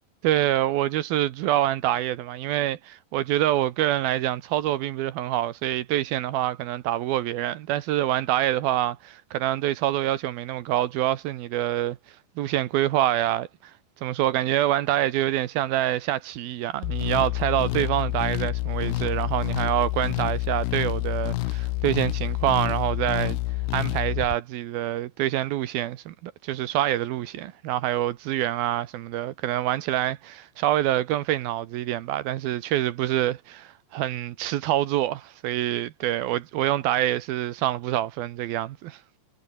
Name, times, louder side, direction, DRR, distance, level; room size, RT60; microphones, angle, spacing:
voice 1, 0.2-12.0 12.4-13.5 14.0-23.4 23.7-39.0, right 13 dB, 70° right, 2.4 m, -26 dB
sound 1, 16.8-24.4, left 19 dB, 80° left, 2.6 m, -28 dB
omnidirectional pair, 5.3 m